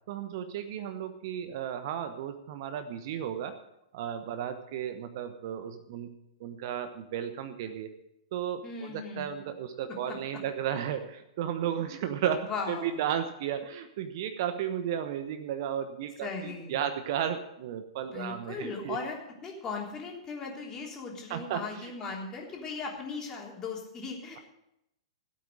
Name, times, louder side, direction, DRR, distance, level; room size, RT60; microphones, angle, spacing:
voice 1, 0.1-3.5 3.9-6.1 6.4-7.9 8.3-19.0 21.3-21.9, right 9 dB, 45° right, 9 dB, 1.1 m, -34 dB
voice 2, 8.6-9.5 10.1-10.2 12.4-13.0 16.2-16.8 18.1-24.4, left 4 dB, 20° left, -1 dB, 3.5 m, -38 dB
15.5 x 8.5 x 6.4 m, 0.82 s
figure-of-eight pair, 105°, 3 cm